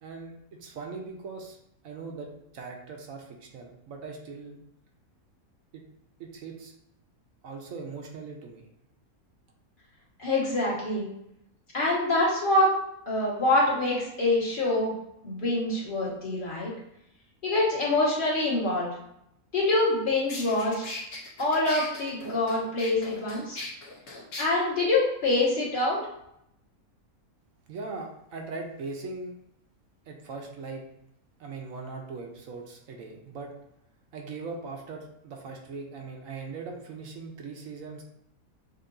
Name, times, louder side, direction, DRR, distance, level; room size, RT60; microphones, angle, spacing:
voice 1, 0.0-0.3 0.6-1.6 1.8-4.6 5.7-5.8 6.2-6.7 7.4-8.6 27.7-29.3 30.1-30.8 31.4-33.5 34.1-38.0, right 4 dB, 70° right, 2 dB, 1.1 m, -40 dB
voice 2, 10.2-11.0 11.7-12.7 13.1-14.9 15.2-16.7 17.4-18.9 19.5-20.9 21.4-23.6 24.4-26.0, left 2 dB, 35° left, -6 dB, 1.6 m, -25 dB
sound 1, 19.9-20.0 20.3-24.5, left 2 dB, 60° left, 1.3 m, -39 dB
6.5 x 2.7 x 2.6 m, 0.77 s
omnidirectional pair, 1.5 m